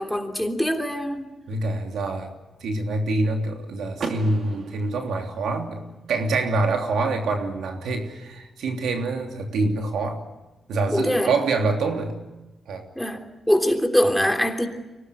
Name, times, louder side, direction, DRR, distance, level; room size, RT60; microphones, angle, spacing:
voice 1, 0.0-1.3 10.9-11.3 12.9-13.2 13.5-14.7, equal, 5° left, 4 dB, 3.3 m, -23 dB
voice 2, 1.5-2.3 2.6-10.2 10.7-12.1 12.7-12.8, right 3 dB, 90° right, 3 dB, 3.2 m, -25 dB
Car / Door, 4.0-5.9, right 4 dB, 65° right, 2.6 m, -35 dB
24.5 x 18.5 x 9.9 m, 1.1 s
cardioid pair, 85°, 0 cm